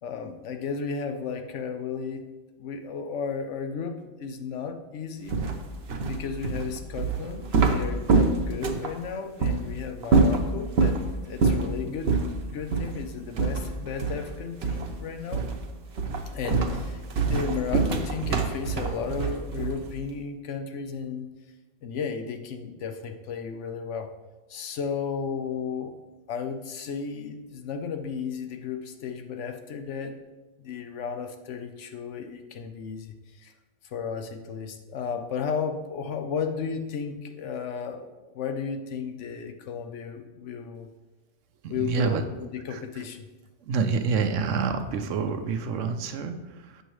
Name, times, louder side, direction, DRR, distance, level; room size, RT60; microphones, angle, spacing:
voice 1, 0.0-2.2 2.6-5.4 6.1-11.0 11.2-12.1 12.4-15.4 16.3-21.3 21.8-24.1 24.5-25.9 26.3-30.1 30.6-33.5 33.8-38.1 38.3-40.9 41.7-43.3, left 6 dB, 75° left, 6 dB, 1.0 m, -34 dB
sound 1, 5.3-8.9 9.4-9.6 10.0-11.0 11.4-11.7 12.1-12.3 12.7-12.9 13.4-14.3 14.6-15.0 15.3-15.6 16.0-19.9, right 4 dB, 60° right, 0.9 m, -24 dB
voice 2, 41.6-42.2 42.7-43.0 43.6-46.8, right 5 dB, 90° right, 8 dB, 1.0 m, -28 dB
7.9 x 6.3 x 3.1 m, 1.1 s
omnidirectional pair, 1.2 m